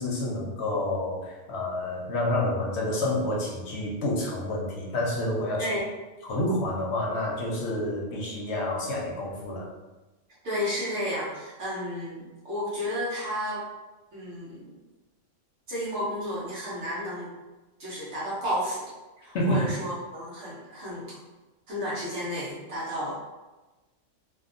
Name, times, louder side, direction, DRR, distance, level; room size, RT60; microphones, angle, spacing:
voice 1, 0.0-5.7 6.2-9.7 19.3-19.6, left 1 dB, 65° left, -3 dB, 0.8 m, -28 dB
voice 2, 10.4-13.7 14.1-14.7 15.7-17.3 17.8-21.2 21.7-23.1, equal, 65° right, -7 dB, 1.1 m, -32 dB
2.7 x 2.2 x 2.5 m, 1.1 s
omnidirectional pair, 1.3 m